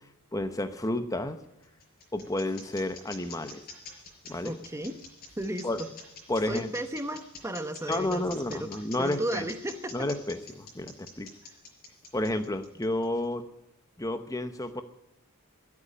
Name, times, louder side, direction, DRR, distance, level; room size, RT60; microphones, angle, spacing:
voice 1, 0.3-1.4 2.1-3.6 4.3-4.6 5.6-5.8 6.3-6.7 7.9-9.5 9.9-11.3 12.1-13.4 14.0-14.8, left 1 dB, 15° left, 8 dB, 0.9 m, -31 dB
sound 1, 1.4-13.2, left 3 dB, 45° left, 5.1 m, -46 dB
voice 2, 4.4-5.0 5.4-5.9 6.5-8.7 9.0-10.1 11.4-11.5, right 1 dB, 15° right, 9 dB, 1.0 m, -34 dB
14.5 x 8.5 x 9.9 m, 0.83 s
head